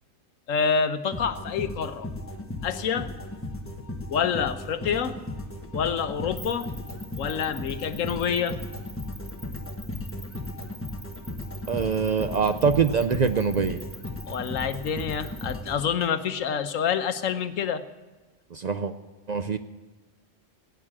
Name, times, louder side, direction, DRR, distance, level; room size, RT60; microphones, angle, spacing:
voice 1, 0.5-2.1 2.6-3.1 4.1-5.2 5.7-6.7 7.2-8.6 14.3-17.8, left 7 dB, 80° left, 10 dB, 1.2 m, -27 dB
sound 1, 1.1-16.4, left 1 dB, 10° left, 1.1 m, -36 dB
sound 2, 6.4-15.5, right 1 dB, 40° right, 3.3 m, -45 dB
voice 2, 11.7-13.8 18.5-18.9 19.3-19.6, right 6 dB, 60° right, 9 dB, 0.4 m, -24 dB
16.0 x 9.2 x 7.4 m, 1.2 s
omnidirectional pair, 1.4 m